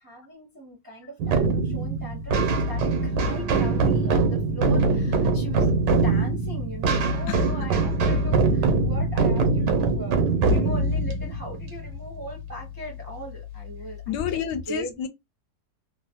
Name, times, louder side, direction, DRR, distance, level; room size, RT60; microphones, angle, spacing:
voice 1, 0.0-10.2 10.4-15.0, right 1 dB, 35° right, 0.3 m, -39 dB
sound 1, 1.2-12.6, right 3 dB, 90° right, 1.4 m, -23 dB
voice 2, 7.3-7.7 14.1-15.1, left 9 dB, 80° left, 1.2 m, -30 dB
3.1 x 2.0 x 2.7 m
omnidirectional pair, 1.8 m